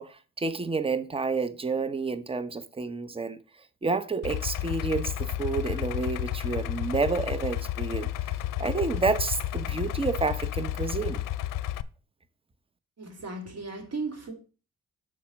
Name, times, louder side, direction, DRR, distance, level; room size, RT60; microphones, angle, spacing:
voice 1, 0.0-3.4 3.8-8.1 8.6-11.2, right 4 dB, 15° right, 0.7 m, -29 dB
Idling, 4.2-11.8, left 13 dB, 75° left, 0.5 m, -31 dB
voice 2, 13.0-14.3, right 3 dB, 50° right, 2.6 m, -36 dB
6.1 x 4.2 x 6.1 m
cardioid pair, 75°, 32 cm